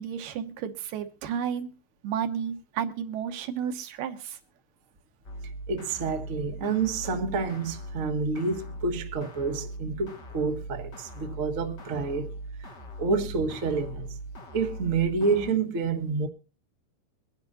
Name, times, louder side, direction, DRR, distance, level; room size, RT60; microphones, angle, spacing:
voice 1, 0.0-1.7 2.0-4.4, right 8 dB, 80° right, 2.7 m, -32 dB
sound 1, 5.2-15.5, right 1 dB, 45° left, 1.6 m, -40 dB
voice 2, 5.7-12.4 13.0-14.2 14.5-16.3, right 4 dB, 45° right, 1.0 m, -28 dB
23.0 x 10.5 x 2.7 m
omnidirectional pair, 3.8 m